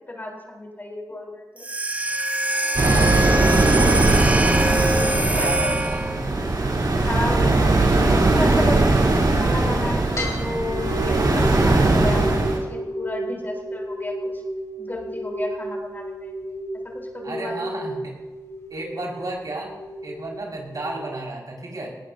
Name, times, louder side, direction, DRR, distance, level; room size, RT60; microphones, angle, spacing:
voice 1, 0.1-1.6 5.2-5.8 7.0-9.1 9.4-14.1 14.8-16.3 16.9-17.5, left 1 dB, 30° left, 0 dB, 3.7 m, -32 dB
sound 1, 1.6-6.3, right 1 dB, 20° right, 0.7 m, -24 dB
voice 2, 2.8-3.2 5.1-6.4 17.2-18.1 18.7-19.7 20.0-21.9, right 2 dB, 65° right, -2 dB, 5.1 m, -33 dB
sound 2, 2.8-12.6, right 2 dB, 80° right, 3.2 m, -19 dB
sound 3, 10.2-21.2, equal, 45° left, 4.1 m, -33 dB
19.5 x 18.5 x 2.7 m, 1.2 s
wide cardioid pair, 110°, 7 cm